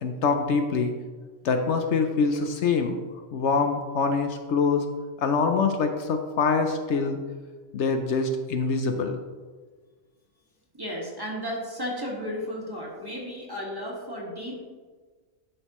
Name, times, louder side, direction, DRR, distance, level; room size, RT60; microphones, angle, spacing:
voice 1, 0.0-0.9 1.4-3.0 3.3-4.8 5.2-7.2 7.7-9.2, left 4 dB, 70° left, 6 dB, 0.9 m, -24 dB
voice 2, 10.7-14.6, equal, 20° right, -3 dB, 1.7 m, -34 dB
11.0 x 6.2 x 3.0 m, 1.4 s
omnidirectional pair, 1.3 m